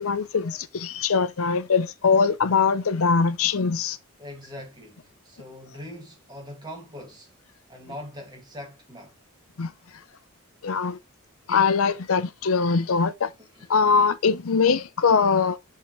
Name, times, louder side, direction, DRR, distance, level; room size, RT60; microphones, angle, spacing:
voice 1, 0.0-4.0 9.6-9.7 10.6-11.0 11.5-13.3 13.7-15.6, left 5 dB, 70° left, 0.6 m, -22 dB
voice 2, 4.2-7.3 7.7-9.2 13.2-13.8, left 1 dB, 20° right, 1.9 m, -42 dB
6.7 x 5.6 x 3.0 m
head